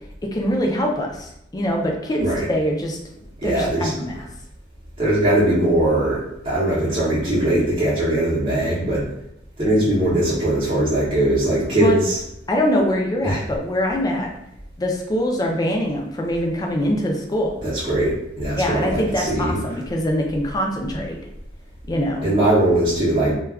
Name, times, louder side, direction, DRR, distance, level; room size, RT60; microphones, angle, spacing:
voice 1, 0.3-3.0 3.4-4.1 11.8-12.0 12.5-14.3 14.8-17.5 18.6-21.2 21.9-22.3, equal, 20° left, 0 dB, 0.4 m, -23 dB
voice 2, 3.4-3.9 5.0-9.1 9.6-12.2 13.2-13.4 17.6-19.6 22.2-23.3, right 1 dB, 30° right, -9 dB, 0.7 m, -20 dB
2.2 x 2.2 x 3.4 m, 0.78 s
head